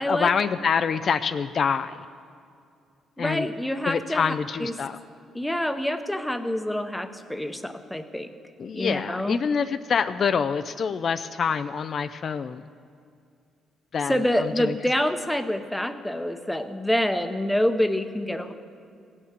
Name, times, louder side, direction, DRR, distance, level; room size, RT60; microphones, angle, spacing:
voice 1, 0.0-2.0 3.2-3.5 3.8-5.0 8.6-12.6 13.9-14.7, left 6 dB, 50° left, 11 dB, 0.3 m, -26 dB
voice 2, 3.2-4.3 4.6-4.7 5.3-8.3 8.7-9.4 14.1-18.5, left 1 dB, 5° left, 9 dB, 0.7 m, -26 dB
16.0 x 5.8 x 8.1 m, 2.4 s
cardioid pair, 90°, 0 cm